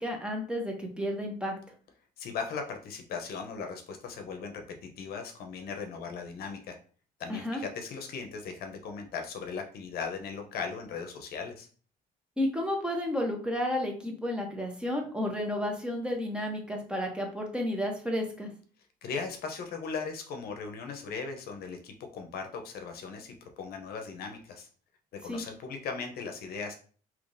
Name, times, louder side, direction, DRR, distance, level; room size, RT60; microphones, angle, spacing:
voice 1, 0.0-1.5 7.3-7.6 12.4-18.5 25.3-25.4, left 1 dB, 5° right, 1 dB, 0.9 m, -32 dB
voice 2, 2.2-6.8 7.2-11.7 19.0-24.7 25.2-26.8, left 5 dB, 65° left, 5 dB, 0.7 m, -38 dB
3.6 x 2.9 x 2.6 m, 0.42 s
cardioid pair, 110°, 17 cm